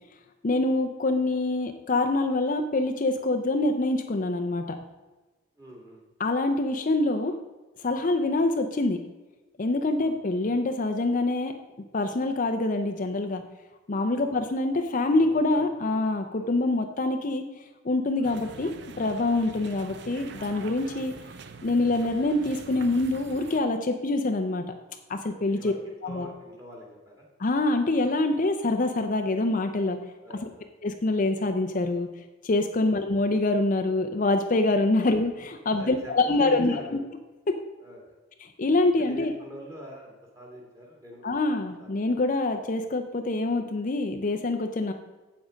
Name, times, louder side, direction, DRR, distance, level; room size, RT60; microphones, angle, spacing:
voice 1, 0.4-4.8 6.2-7.3 7.8-9.0 9.6-11.5 11.9-13.4 13.9-17.4 17.8-21.1 21.6-24.6 25.1-25.7 26.0-26.3 27.4-30.0 30.8-32.1 32.4-36.7 37.5-37.6 38.4-39.3 41.2-44.9, left 2 dB, 40° left, 6 dB, 0.5 m, -25 dB
voice 2, 5.6-6.0 8.2-8.3 10.0-10.2 12.5-12.7 14.2-14.4 15.1-16.0 16.3-16.6 21.0-21.2 25.4-27.3 30.2-30.7 32.8-33.0 35.7-37.0 37.8-38.1 39.0-41.4 41.8-42.4, equal, 15° right, -1 dB, 2.2 m, -44 dB
sound 1, 18.2-23.6, right 4 dB, 60° right, 0.6 m, -44 dB
8.4 x 7.3 x 5.1 m, 1.2 s
head